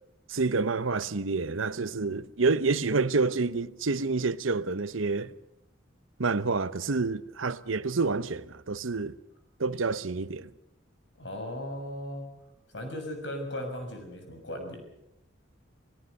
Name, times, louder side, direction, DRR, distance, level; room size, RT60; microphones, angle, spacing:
voice 1, 0.3-5.3 6.2-9.1 9.6-10.5, right 4 dB, 90° right, 0.9 m, -28 dB
voice 2, 11.2-12.3 12.7-14.8, left 1 dB, 65° left, 6.5 m, -37 dB
27.5 x 18.0 x 6.6 m
head